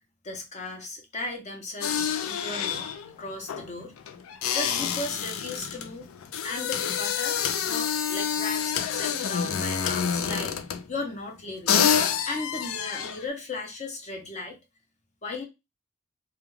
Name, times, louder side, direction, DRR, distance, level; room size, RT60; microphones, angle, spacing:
voice 1, 0.2-2.9 3.2-3.9 4.5-6.1 6.4-10.5 10.9-11.8 12.3-14.6 15.2-15.4, left 2 dB, 35° left, 2 dB, 0.7 m, -36 dB
sound 1, 1.8-10.9 11.4-11.5 11.7-13.3, left 8 dB, 90° left, 0.4 m, -28 dB
2.3 x 2.2 x 3.1 m, 0.24 s
head